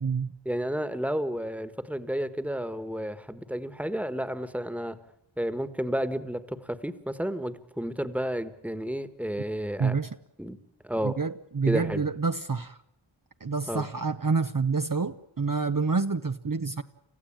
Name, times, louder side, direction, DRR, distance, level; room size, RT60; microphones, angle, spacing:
voice 1, 0.4-5.0 5.4-10.0 10.4-10.6 10.8-11.1 11.7-12.0 13.7-13.8, equal, 5° right, 12 dB, 1.5 m, -31 dB
voice 2, 9.8-10.2 11.0-12.8 13.4-16.8, right 4 dB, 45° right, 8 dB, 0.8 m, -28 dB
29.5 x 15.0 x 8.8 m, 0.82 s
wide cardioid pair, 45°, 48 cm